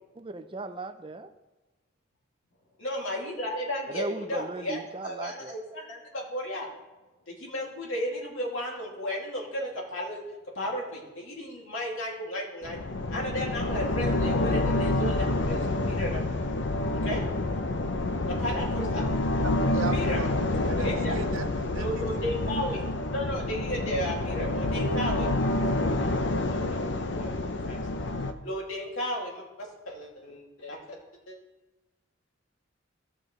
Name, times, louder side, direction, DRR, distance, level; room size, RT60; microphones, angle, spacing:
voice 1, 0.2-1.3 3.9-5.6, right 2 dB, 25° right, 10 dB, 0.5 m, -37 dB
voice 2, 2.8-6.7 7.3-10.2 10.5-12.8 13.1-16.2 16.9-17.2 18.3-19.0 19.9-20.2 20.8-21.2 21.7-22.8 23.1-25.3 25.7-26.1 26.5-27.9 28.2-31.0 31.3-31.4, equal, 85° left, -3 dB, 2.6 m, -34 dB
sound 1, 12.6-28.3, left 2 dB, 60° left, 0.7 m, -28 dB
voice 3, 19.4-20.3 20.7-22.2, right 5 dB, 90° right, 9 dB, 0.7 m, -37 dB
16.0 x 6.3 x 3.3 m, 1.1 s
head